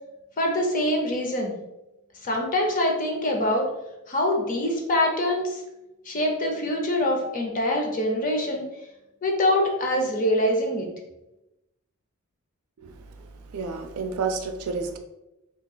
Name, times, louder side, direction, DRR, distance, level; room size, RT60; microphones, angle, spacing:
voice 1, 0.4-1.5 2.2-3.7 4.1-5.6 6.1-8.7 9.2-10.9, left 1 dB, 40° left, 1 dB, 0.6 m, -24 dB
voice 2, 12.8-15.0, right 4 dB, 80° right, 6 dB, 0.4 m, -31 dB
2.9 x 2.4 x 3.7 m, 0.94 s
head